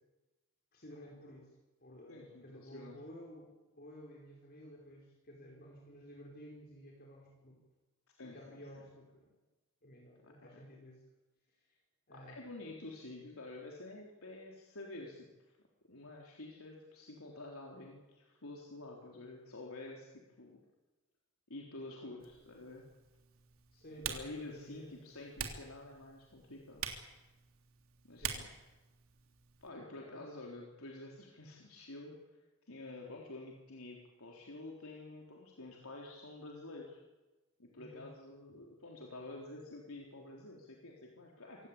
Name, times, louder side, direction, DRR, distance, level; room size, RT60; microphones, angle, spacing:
voice 1, 0.7-1.5 1.8-7.6 8.2-9.4 9.8-11.0 11.5-11.8 12.1-12.6 23.7-25.0 28.2-28.4 29.9-30.3 37.7-38.1, equal, 45° left, -1 dB, 4.9 m, -54 dB
voice 2, 2.1-3.0 8.2-8.4 10.2-10.3 12.1-15.6 15.9-20.6 21.5-22.8 24.0-26.9 28.0-28.5 29.6-32.2 32.7-37.0 37.6-41.7, left 2 dB, 80° left, -1 dB, 3.7 m, -49 dB
Typing, 22.2-29.7, right 7 dB, 75° right, 3.2 m, -46 dB
26.0 x 17.0 x 8.6 m, 1.1 s
head